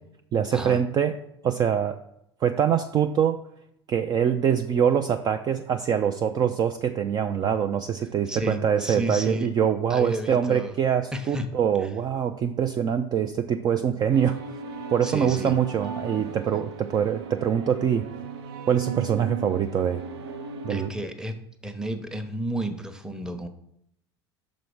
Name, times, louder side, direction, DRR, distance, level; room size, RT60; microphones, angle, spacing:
voice 1, 0.3-1.2 1.4-2.0 2.4-3.4 3.9-14.4 14.9-18.1 18.7-20.0 20.6-20.9, right 8 dB, 30° right, 8 dB, 0.4 m, -24 dB
voice 2, 8.3-9.5 9.9-10.8 11.1-11.5 11.8-11.9 15.0-15.5 20.7-23.5, right 1 dB, 5° right, 7 dB, 0.9 m, -32 dB
sound 1, 14.1-20.9, right 5 dB, 70° right, 0.7 m, -37 dB
6.3 x 5.1 x 4.7 m, 0.75 s
figure-of-eight pair, 75°, 14 cm